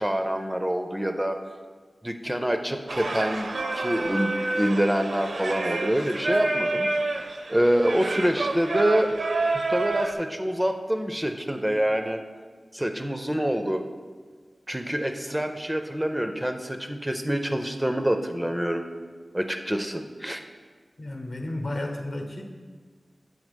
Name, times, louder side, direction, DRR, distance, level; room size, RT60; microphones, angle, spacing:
voice 1, 0.0-1.4 2.0-3.5 3.7-6.9 7.5-9.1 9.5-12.2 12.7-13.8 14.7-18.8 19.3-20.4, equal, 10° right, 6 dB, 0.4 m, -26 dB
Singing, 2.9-10.1, right 2 dB, 75° right, 0.5 m, -28 dB
voice 2, 21.0-22.4, left 1 dB, 60° left, 3 dB, 0.8 m, -32 dB
7.2 x 3.8 x 5.1 m, 1.5 s
wide cardioid pair, 85°, 0 cm